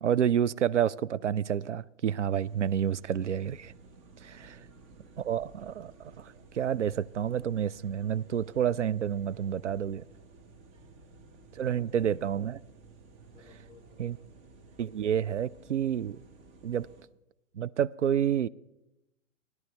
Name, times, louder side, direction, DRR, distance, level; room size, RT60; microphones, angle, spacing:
voice 1, 0.0-3.7 4.2-4.4 5.2-10.0 11.6-12.6 14.0-14.1 14.8-16.2 16.6-16.9 17.6-18.5, right 9 dB, 65° right, 0.5 m, -29 dB
sound 1, 2.3-17.0, right 4 dB, 20° right, 0.9 m, -54 dB
voice 2, 10.7-12.2 13.3-14.3, left 4 dB, 20° left, 4.3 m, -60 dB
16.0 x 11.0 x 4.4 m
figure-of-eight pair, 125°, 39 cm